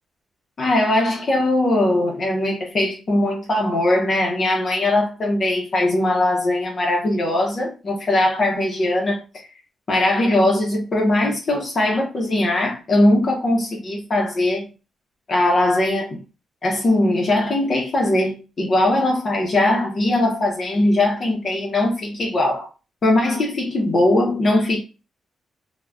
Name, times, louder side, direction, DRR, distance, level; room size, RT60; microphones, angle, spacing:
voice 1, 0.6-9.5 9.9-14.7 15.3-16.2 16.6-22.7 23.0-24.8, left 1 dB, 45° left, 0.6 m, -20 dB
2.3 x 2.1 x 3.3 m
cardioid pair, 85°, 0 cm